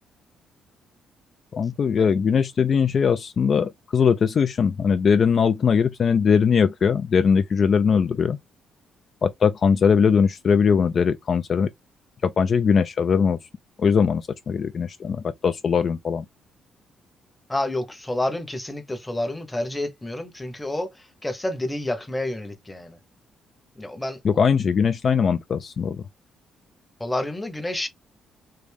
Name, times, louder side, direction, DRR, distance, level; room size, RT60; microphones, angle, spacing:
voice 1, 1.5-8.4 9.2-11.7 12.2-13.4 13.8-16.3 24.2-26.0, left 6 dB, 50° left, 0.4 m, -20 dB
voice 2, 17.5-23.0 23.8-24.2 27.0-27.9, left 1 dB, 15° left, 0.9 m, -29 dB
3.3 x 2.5 x 3.4 m
cardioid pair, 90°, 0 cm